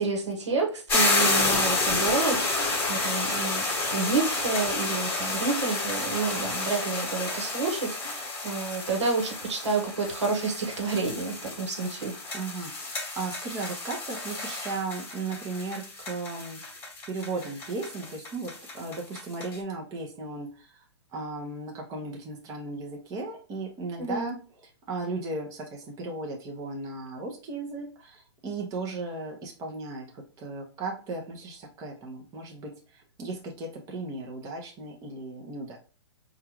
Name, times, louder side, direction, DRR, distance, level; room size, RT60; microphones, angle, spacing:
voice 1, 0.0-3.6 3.9-12.2 24.0-24.3, right 4 dB, 75° right, 1 dB, 1.1 m, -29 dB
sound 1, 0.9-19.6, left 2 dB, 15° left, 1.2 m, -30 dB
voice 2, 12.3-16.6 17.1-20.8 21.1-24.4 24.9-35.8, right 3 dB, 25° right, 0 dB, 0.8 m, -36 dB
4.6 x 2.4 x 2.9 m, 0.37 s
hypercardioid pair, 135°, 15 cm